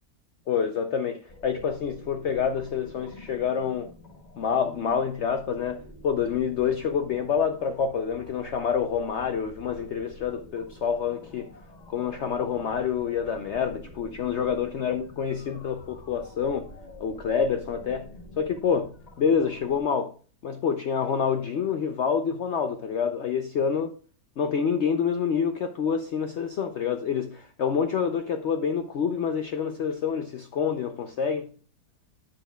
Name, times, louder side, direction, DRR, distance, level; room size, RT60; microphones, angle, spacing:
voice 1, 0.5-3.9 4.4-11.5 11.9-16.7 17.0-18.1 18.4-20.1 20.4-23.9 24.4-31.5, left 7 dB, 70° left, 0.6 m, -27 dB
sound 1, 1.3-19.8, left 2 dB, 35° left, 0.8 m, -48 dB
8.7 x 6.8 x 2.2 m
omnidirectional pair, 1.8 m